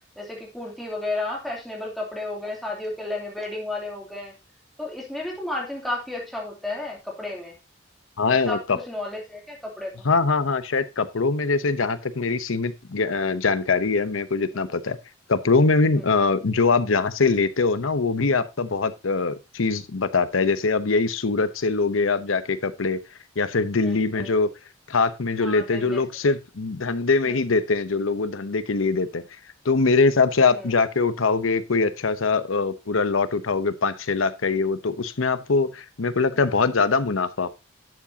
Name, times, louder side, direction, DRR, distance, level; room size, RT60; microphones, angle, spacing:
voice 1, 0.2-4.3 4.8-7.5 8.3-8.6 8.9-9.9 23.8-24.4 25.4-26.0 27.2-27.3 30.5-30.7 36.3-36.6, left 2 dB, ahead, 2.8 m, -32 dB
voice 2, 8.2-8.8 10.0-15.0 15.3-23.0 23.4-24.5 24.9-29.2 29.6-37.5, left 4 dB, 85° left, 0.8 m, -22 dB
11.0 x 7.4 x 2.8 m
head